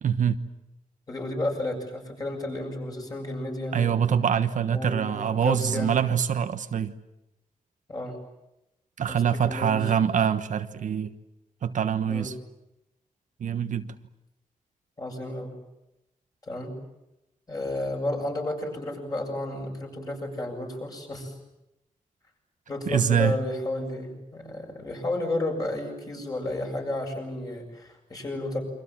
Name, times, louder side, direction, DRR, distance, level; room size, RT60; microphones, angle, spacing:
voice 1, 0.0-0.4 3.7-6.9 9.0-11.1 11.6-12.3 13.4-13.9 22.9-23.4, right 8 dB, 65° right, 9 dB, 1.2 m, -24 dB
voice 2, 1.1-4.1 4.7-5.9 7.9-8.2 9.1-9.8 12.1-12.3 15.0-15.5 16.5-16.7 17.5-21.3 22.7-28.6, left 1 dB, 25° left, 2 dB, 7.6 m, -32 dB
28.5 x 25.5 x 7.5 m, 0.90 s
wide cardioid pair, 175°, 14 cm